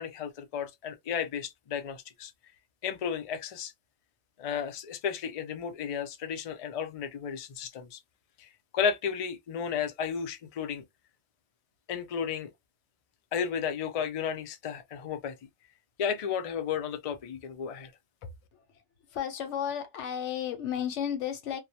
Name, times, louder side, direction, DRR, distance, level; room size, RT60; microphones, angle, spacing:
voice 1, 0.0-2.3 2.8-3.7 4.4-8.0 8.4-10.8 11.9-12.5 13.3-15.4 16.0-17.9, left 7 dB, 65° left, 0.3 m, -33 dB
voice 2, 18.5-18.8 19.1-21.6, left 9 dB, 90° left, 1.0 m, -33 dB
2.3 x 2.0 x 2.7 m
omnidirectional pair, 1.2 m